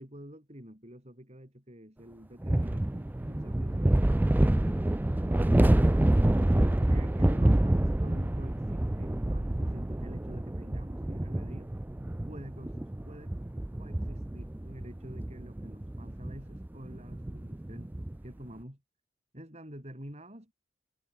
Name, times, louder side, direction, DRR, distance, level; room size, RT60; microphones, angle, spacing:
voice 1, 0.0-5.4 6.4-11.7 12.2-12.8 13.0-13.4 13.8-17.9 18.2-18.8 19.3-20.5, equal, 35° right, 7.7 m, -48 dB
sound 1, 2.4-18.3, right 1 dB, 10° right, 0.3 m, -27 dB
head